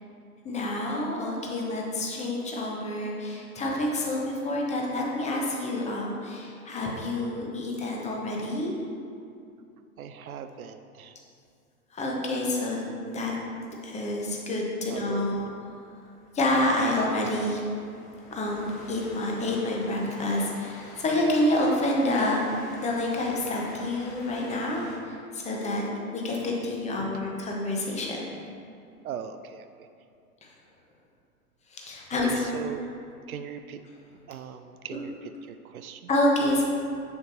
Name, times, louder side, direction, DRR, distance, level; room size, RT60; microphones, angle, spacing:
voice 1, 0.4-8.7 11.9-13.4 13.8-15.5 16.3-17.6 18.3-22.4 22.8-25.8 26.1-28.2 30.4-30.5 31.7-32.4 34.9-35.0 36.1-36.6, left 1 dB, 15° left, -2 dB, 0.8 m, -28 dB
voice 2, 10.0-11.2 14.9-15.2 29.0-29.9 32.1-32.9 33.3-33.8 34.3-36.1, right 8 dB, 70° right, 9 dB, 0.5 m, -39 dB
Train, 15.2-25.0, left 2 dB, 35° left, 1.3 m, -48 dB
7.0 x 6.6 x 2.6 m, 2.5 s
figure-of-eight pair, 100°, 45 cm